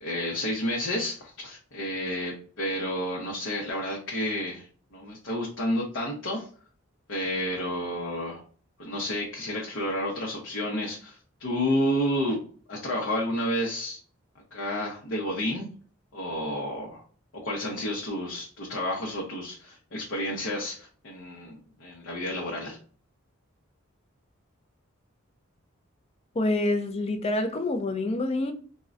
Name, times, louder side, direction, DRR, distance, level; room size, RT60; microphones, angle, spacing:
voice 1, 0.0-6.5 7.1-8.4 8.8-14.0 14.5-15.7 16.1-17.0 17.4-22.8, left 1 dB, 65° left, 0.7 m, -30 dB
voice 2, 26.3-28.5, left 2 dB, 30° left, 0.4 m, -27 dB
3.7 x 2.1 x 2.4 m
head